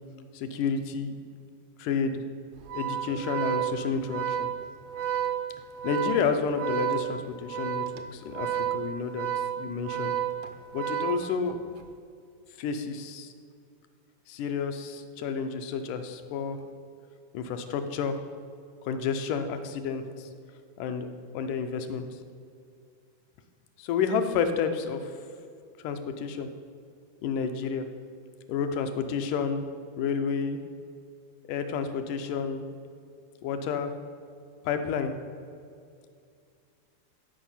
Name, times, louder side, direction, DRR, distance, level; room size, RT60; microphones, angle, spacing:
voice 1, 0.3-1.1 1.8-2.2 2.7-4.5 5.8-9.3 9.6-10.2 10.7-11.6 12.6-13.3 14.3-16.6 17.3-18.2 18.9-20.3 20.8-21.1 21.3-22.1 23.8-25.1 25.8-26.5 27.2-27.9 28.5-29.6 30.0-30.6 31.5-32.6 33.4-33.9 34.7-35.1, left 6 dB, 85° left, 8 dB, 2.2 m, -30 dB
Organ, 2.6-11.7, right 10 dB, 85° right, 1.4 m, -31 dB
12.0 x 5.1 x 5.5 m, 2.3 s
omnidirectional pair, 3.6 m